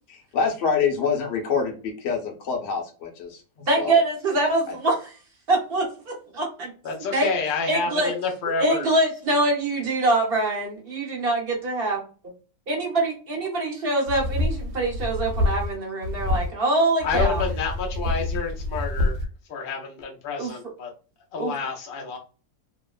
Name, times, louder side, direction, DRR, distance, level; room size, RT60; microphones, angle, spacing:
voice 1, 0.1-4.0, left 6 dB, 55° left, 2 dB, 0.9 m, -26 dB
voice 2, 3.7-5.1 5.5-6.7 7.1-7.3 7.7-8.1 8.6-12.0 12.7-17.4 20.4-20.6 21.4-21.5, right 2 dB, 50° right, -1 dB, 0.7 m, -24 dB
voice 3, 6.8-8.8 17.0-19.2 19.5-20.9 21.3-22.2, left 5 dB, 80° left, 0 dB, 0.4 m, -29 dB
sound 1, 14.1-15.7 16.0-16.5 17.0-19.3, left 2 dB, 75° right, 1.1 m, -26 dB
2.9 x 2.0 x 2.3 m, 0.37 s
omnidirectional pair, 1.8 m